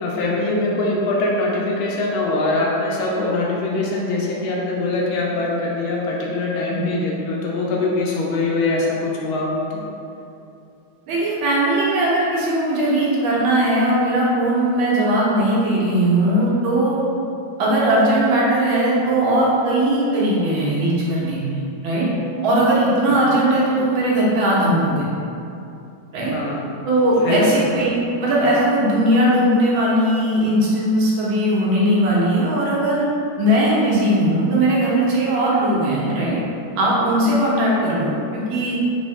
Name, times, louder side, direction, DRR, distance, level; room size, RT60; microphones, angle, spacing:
voice 1, 0.0-9.8 23.1-23.2 26.2-26.6 27.2-27.6, left 2 dB, 85° left, -3 dB, 1.5 m, -23 dB
voice 2, 11.1-17.0 17.6-22.1 22.4-25.1 26.1-26.4 26.9-33.1 33.4-36.4 36.8-38.8, right 1 dB, 80° right, -6 dB, 1.6 m, -19 dB
4.0 x 2.7 x 3.1 m, 2.7 s
omnidirectional pair, 2.2 m